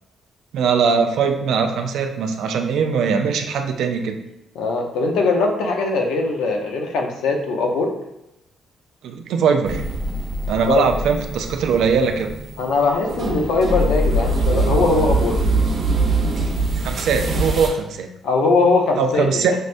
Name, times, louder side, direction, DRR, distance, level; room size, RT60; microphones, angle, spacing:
voice 1, 0.5-4.2 9.0-9.8 10.5-12.3 16.8-18.1 19.0-19.5, right 6 dB, 75° right, 5 dB, 0.4 m, -20 dB
voice 2, 4.5-7.9 10.7-10.9 12.6-15.4 18.2-19.5, left 3 dB, 85° left, 2 dB, 0.6 m, -20 dB
sound 1, 9.6-17.7, right 2 dB, 60° right, 0.9 m, -23 dB
6.2 x 2.1 x 2.5 m, 0.87 s
cardioid pair, 90°, 0 cm